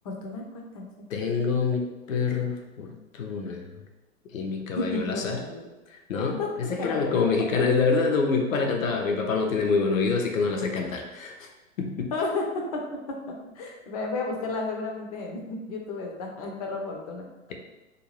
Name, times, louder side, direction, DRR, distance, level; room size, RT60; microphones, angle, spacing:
voice 1, 0.0-1.1 4.8-5.7 6.4-6.5 6.8-7.6 12.1-17.5, left 3 dB, 30° left, 0 dB, 0.4 m, -33 dB
voice 2, 1.1-3.7 4.3-5.4 6.1-11.3 11.8-12.1, left 4 dB, 75° left, 3 dB, 0.6 m, -26 dB
2.5 x 2.3 x 3.0 m, 1.1 s
figure-of-eight pair, 105°, 41 cm